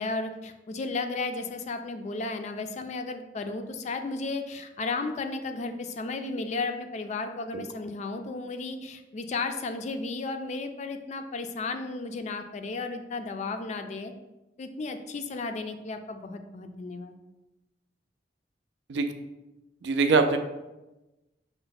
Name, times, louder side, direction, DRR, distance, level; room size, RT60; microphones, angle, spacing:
voice 1, 0.0-14.1 14.6-17.1, left 3 dB, 40° left, 7 dB, 0.3 m, -34 dB
voice 2, 19.8-20.4, right 4 dB, 75° right, 7 dB, 0.4 m, -23 dB
5.6 x 2.1 x 4.0 m, 1.0 s
head